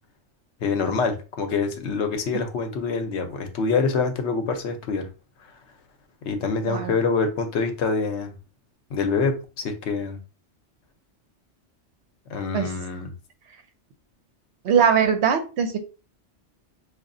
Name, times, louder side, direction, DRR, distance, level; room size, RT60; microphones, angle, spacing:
voice 1, 0.6-5.1 6.2-8.3 8.9-10.2 12.3-13.1, left 4 dB, 70° left, 0.9 m, -25 dB
voice 2, 14.6-15.8, right 7 dB, 70° right, 0.9 m, -21 dB
4.8 x 2.4 x 2.5 m
omnidirectional pair, 1.2 m